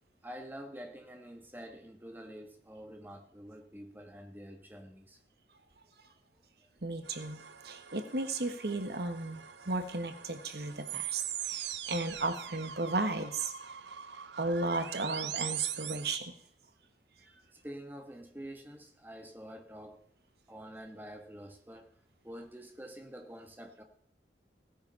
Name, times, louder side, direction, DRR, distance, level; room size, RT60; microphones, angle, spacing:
voice 1, 0.2-5.2 17.2-20.1 20.5-21.9 22.2-23.8, equal, 10° right, 1.4 m, -47 dB
voice 2, 6.8-13.5 14.4-16.3, right 2 dB, 65° right, 1.4 m, -35 dB
sound 1, 7.1-16.2, right 10 dB, 90° right, 0.8 m, -42 dB
16.5 x 9.3 x 5.6 m
head